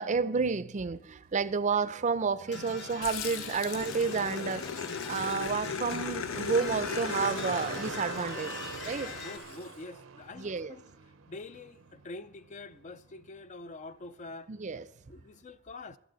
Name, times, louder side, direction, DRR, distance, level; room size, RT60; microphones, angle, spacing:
voice 1, 0.0-8.5 8.8-9.1 10.4-10.7 14.5-14.9, right 5 dB, 35° right, 0.5 m, -31 dB
sound 1, 1.0-15.4, right 5 dB, 85° right, 0.7 m, -47 dB
sound 2, 2.5-9.4, left 4 dB, 60° left, 1.6 m, -43 dB
Growling, 3.0-9.7, left 6 dB, 85° left, 0.7 m, -38 dB
voice 2, 9.0-10.9 11.3-14.5 15.1-16.0, left 3 dB, 35° left, 0.4 m, -45 dB
19.5 x 12.0 x 3.9 m
head